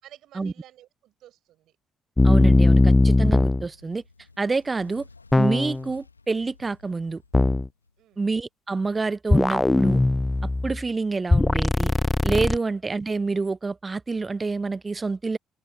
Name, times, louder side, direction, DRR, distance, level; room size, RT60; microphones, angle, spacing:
voice 1, 0.0-1.8 8.0-8.2, right 13 dB, 60° right, 5.4 m, -52 dB
sound 1, 2.2-3.7 5.3-5.9 7.3-7.7 9.3-10.8 11.3-12.6, left 2 dB, 15° left, 0.5 m, -19 dB
voice 2, 2.2-4.0 4.4-5.0 5.4-7.2 8.2-10.0 10.6-11.9 12.2-15.4, right 3 dB, 25° right, 0.7 m, -27 dB
Fire, 3.7-8.2, left 3 dB, 90° left, 2.6 m, -52 dB
open air
figure-of-eight pair, 45°, 0 cm